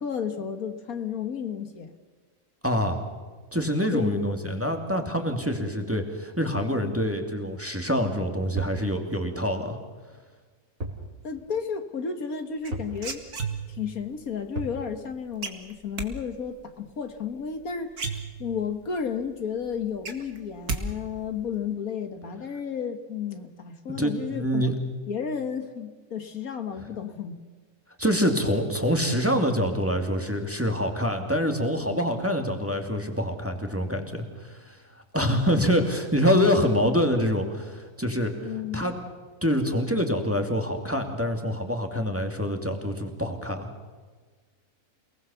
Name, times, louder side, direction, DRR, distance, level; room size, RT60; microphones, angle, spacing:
voice 1, 0.0-1.9 3.9-4.4 11.2-13.2 13.7-17.9 18.4-24.8 25.1-27.4 38.4-39.0, left 7 dB, 65° left, 8 dB, 1.9 m, -32 dB
voice 2, 2.6-3.0 3.5-9.8 23.9-24.7 28.0-34.8 35.1-39.0 39.4-43.7, equal, 10° right, 4 dB, 2.4 m, -26 dB
sound 1, 8.6-8.9 10.8-11.1 11.4-11.5 12.7-13.0 14.5-14.8, right 1 dB, 60° right, 4.4 m, -34 dB
sound 2, 12.6-13.9 15.4-16.1 17.5-17.6 17.9-18.7 19.2-19.3 19.6-20.8 21.1-21.6, right 5 dB, 75° right, 2.6 m, -33 dB
29.0 x 19.5 x 7.1 m, 1.4 s
omnidirectional pair, 1.6 m